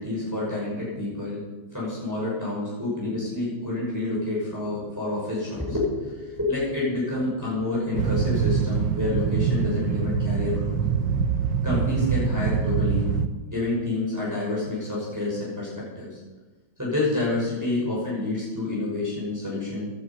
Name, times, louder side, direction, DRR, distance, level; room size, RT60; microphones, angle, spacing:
voice 1, 0.0-1.4 1.7-10.8 11.6-13.1 13.5-15.7 15.9-16.2 16.8-19.9, left 2 dB, 10° right, -7 dB, 6.2 m, -28 dB
sound 1, 7.9-13.3, right 6 dB, 70° right, 1.6 m, -24 dB
16.5 x 11.0 x 5.5 m, 1.2 s
omnidirectional pair, 2.0 m